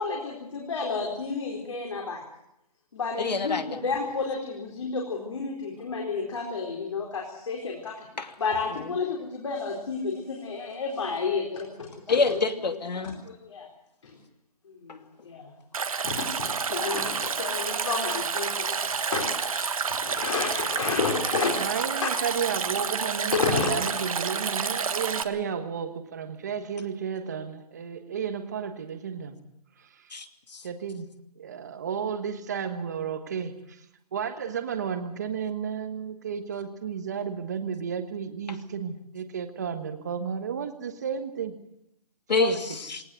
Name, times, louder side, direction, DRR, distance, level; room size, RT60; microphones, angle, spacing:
voice 1, 0.0-2.2 2.9-8.1 8.4-12.5 12.9-13.7 14.0-14.2 14.7-15.5 16.0-18.8 19.1-21.6 21.9-22.1 23.3-24.1, left 4 dB, 50° left, -1 dB, 4.3 m, -31 dB
voice 2, 3.2-3.8 8.2-8.3 12.1-13.2 30.1-30.6 42.3-43.0, left 4 dB, 85° left, 7 dB, 2.6 m, -27 dB
Stream, 15.7-25.2, right 5 dB, 55° right, 1.4 m, -29 dB
voice 3, 21.6-29.4 29.8-30.1 30.6-31.1 31.4-33.8 34.1-41.5 42.4-42.6, right 7 dB, 25° right, 8 dB, 1.4 m, -32 dB
20.5 x 18.5 x 7.9 m, 0.81 s
hypercardioid pair, 180°, 21 cm